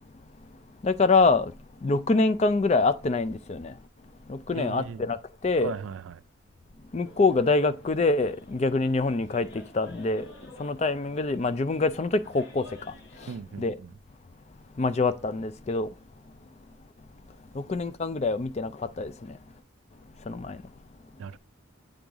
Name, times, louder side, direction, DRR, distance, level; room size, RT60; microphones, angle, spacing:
voice 1, 0.8-1.5 1.8-3.8 4.3-5.7 6.9-13.8 14.8-15.9 17.5-19.4 20.2-20.6, left 3 dB, 30° left, 0.4 m, -26 dB
voice 2, 4.5-5.0 5.6-6.2 13.3-13.9 21.2-21.4, right 6 dB, 75° right, 0.4 m, -38 dB
sound 1, 7.0-13.4, left 3 dB, 55° left, 1.8 m, -52 dB
7.8 x 3.9 x 3.5 m
head